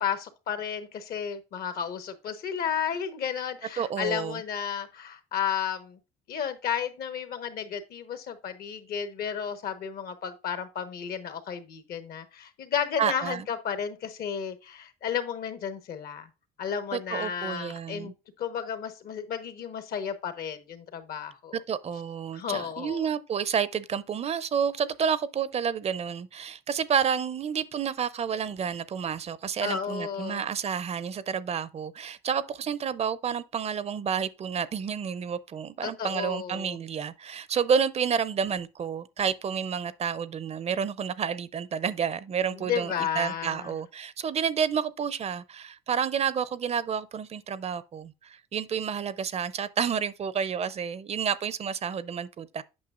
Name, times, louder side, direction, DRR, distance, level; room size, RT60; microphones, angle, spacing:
voice 1, 0.0-6.0 6.3-16.3 16.6-18.1 18.4-21.6 22.3-23.1 29.6-30.4 35.8-36.8 42.5-43.7, left 8 dB, 65° left, 1.2 m, -33 dB
voice 2, 3.8-4.4 13.0-13.5 16.9-18.1 21.5-52.6, right 7 dB, 40° right, 0.5 m, -30 dB
8.6 x 5.7 x 2.4 m
cardioid pair, 110°, 17 cm